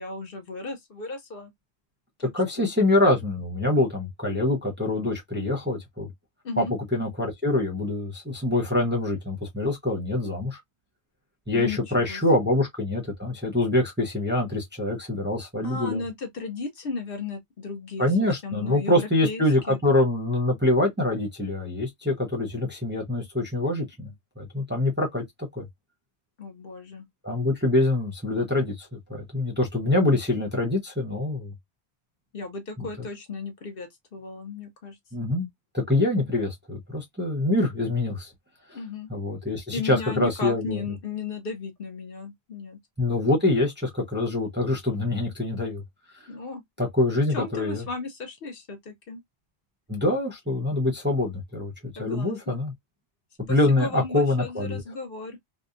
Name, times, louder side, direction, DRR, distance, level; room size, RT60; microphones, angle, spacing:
voice 1, 0.0-1.5 2.2-2.3 2.6-2.7 6.4-6.7 11.5-12.2 15.6-18.1 18.4-19.8 26.4-27.1 32.3-35.3 38.7-39.1 39.7-42.8 46.3-46.6 47.3-49.2 52.0-52.6 53.5-55.4, left 4 dB, 60° left, 0.9 m, -35 dB
voice 2, 2.3-6.1 6.6-6.7 6.9-10.6 11.5-16.0 18.0-25.2 25.5-25.7 27.2-31.5 32.8-32.9 35.1-35.5 35.7-38.3 39.1-40.8 43.0-45.8 46.8-47.8 49.9-52.7 53.4-54.8, left 2 dB, 10° right, 0.7 m, -25 dB
2.7 x 2.2 x 2.4 m
omnidirectional pair, 1.1 m